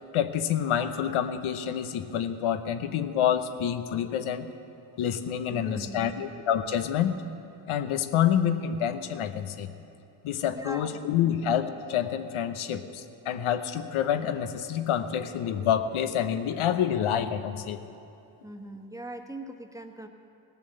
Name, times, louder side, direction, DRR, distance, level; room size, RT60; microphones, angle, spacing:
voice 1, 0.1-4.5 5.0-7.1 7.7-9.7 10.2-17.8, left 9 dB, 80° left, 10 dB, 0.9 m, -27 dB
voice 2, 5.5-6.2 10.5-11.4 18.4-20.1, right 1 dB, 5° right, 4 dB, 1.2 m, -41 dB
18.0 x 7.0 x 7.8 m, 2.7 s
cardioid pair, 65°, 49 cm